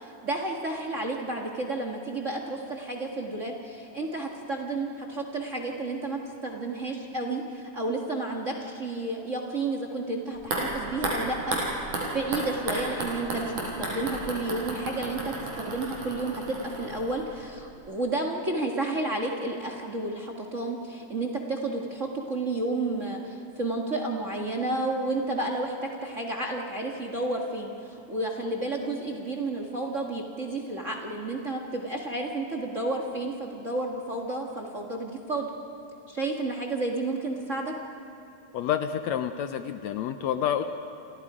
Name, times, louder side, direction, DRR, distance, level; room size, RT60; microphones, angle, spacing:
voice 1, 0.0-11.6 12.1-35.5 36.1-37.7, right 2 dB, 30° right, 2 dB, 1.5 m, -31 dB
sound 1, 10.4-17.5 17.7-17.8, right 2 dB, 75° right, 5.8 m, -33 dB
voice 2, 38.5-40.6, left 9 dB, 75° left, 9 dB, 1.8 m, -28 dB
29.5 x 27.5 x 5.0 m, 2.8 s
omnidirectional pair, 3.5 m